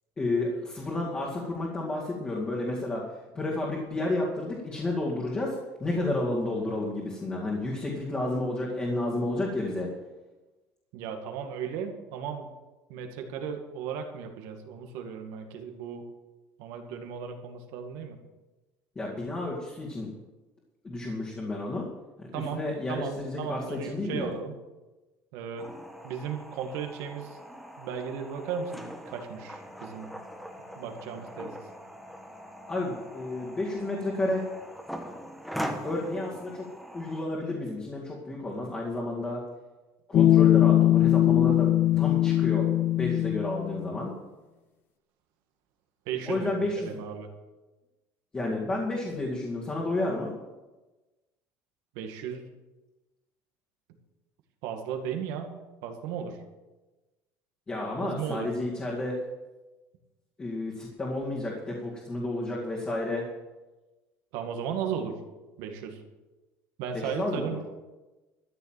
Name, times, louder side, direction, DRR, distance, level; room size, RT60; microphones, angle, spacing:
voice 1, 0.2-9.9 19.0-20.1 20.8-21.9 22.2-24.3 32.7-34.4 35.8-36.7 36.9-39.4 40.1-41.7 42.0-42.7 43.0-44.1 46.3-47.0 48.3-50.3 57.7-59.2 60.4-63.2 66.9-67.6, left 2 dB, 15° left, -5 dB, 2.2 m, -31 dB
voice 2, 10.9-12.5 12.9-16.1 16.6-18.2 22.3-22.6 22.9-24.5 25.3-25.7 26.0-27.4 27.8-30.2 30.8-31.6 46.1-46.5 46.8-47.3 51.9-52.5 54.6-55.5 55.8-56.4 58.0-58.5 64.3-65.2 65.6-66.0 66.8-67.7, right 7 dB, 75° right, 4 dB, 2.1 m, -35 dB
sound 1, 25.6-37.2, equal, ahead, 1.2 m, -41 dB
sound 2, 40.1-44.0, left 13 dB, 35° left, 0.4 m, -21 dB
13.5 x 6.9 x 9.1 m, 1.1 s
cardioid pair, 160°, 6 cm